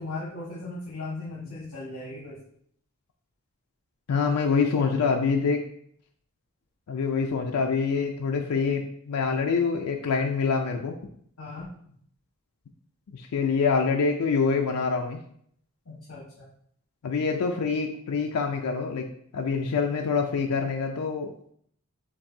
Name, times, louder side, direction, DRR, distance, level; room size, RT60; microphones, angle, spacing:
voice 1, 0.0-2.4 11.4-11.7 15.8-16.4, left 2 dB, 70° left, -7 dB, 1.3 m, -37 dB
voice 2, 4.1-5.6 6.9-10.9 13.1-15.2 17.0-19.1 19.3-21.5, left 5 dB, 85° left, 2 dB, 0.4 m, -25 dB
7.1 x 2.6 x 2.7 m, 0.65 s
head